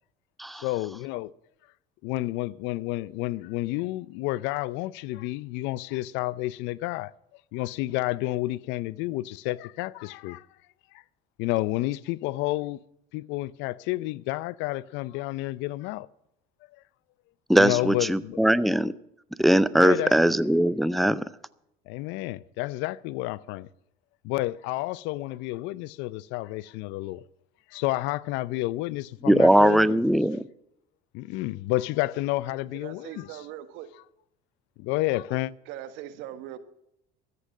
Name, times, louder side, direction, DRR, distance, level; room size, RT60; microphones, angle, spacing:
voice 1, 0.5-1.3 2.0-7.1 7.5-10.5 11.4-12.8 13.1-16.1 17.6-18.4 19.8-20.4 21.9-23.7 24.2-27.3 27.7-30.0 31.1-33.4 34.8-35.5, left 18 dB, 70° left, 0.6 m, -30 dB
voice 2, 17.5-18.9 19.4-21.2 29.2-30.4, right 1 dB, ahead, 0.5 m, -20 dB
voice 3, 32.7-33.9 35.7-36.6, right 12 dB, 70° right, 1.5 m, -40 dB
14.0 x 8.5 x 7.2 m
supercardioid pair, 85°, 20 cm